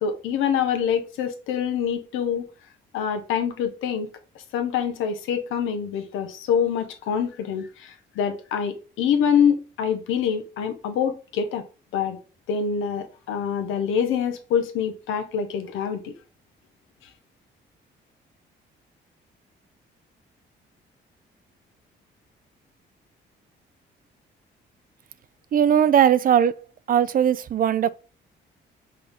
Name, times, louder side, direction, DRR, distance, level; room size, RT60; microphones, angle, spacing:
voice 1, 0.0-2.5 2.9-4.1 4.5-11.6 11.9-12.2 12.5-16.1, left 7 dB, 90° left, 0.9 m, -25 dB
voice 2, 25.5-26.6 26.9-27.9, right 9 dB, 45° right, 0.4 m, -19 dB
5.5 x 2.7 x 3.5 m
cardioid pair, 90°, 20 cm